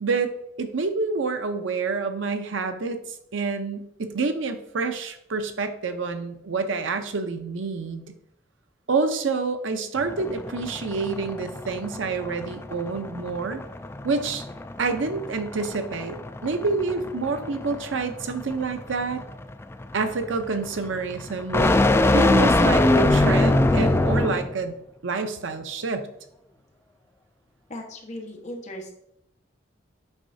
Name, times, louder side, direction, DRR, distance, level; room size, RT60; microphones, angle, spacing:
voice 1, 0.0-3.0 3.3-8.1 8.9-13.6 14.0-14.4 14.8-16.2 16.4-19.3 19.9-21.8 22.1-24.8 25.0-26.1, right 4 dB, 85° right, 8 dB, 0.7 m, -28 dB
sound 1, 10.0-24.5, left 2 dB, 15° left, 0.3 m, -24 dB
voice 2, 27.7-28.9, left 1 dB, 40° left, 0 dB, 1.3 m, -37 dB
8.1 x 5.5 x 2.7 m, 0.75 s
head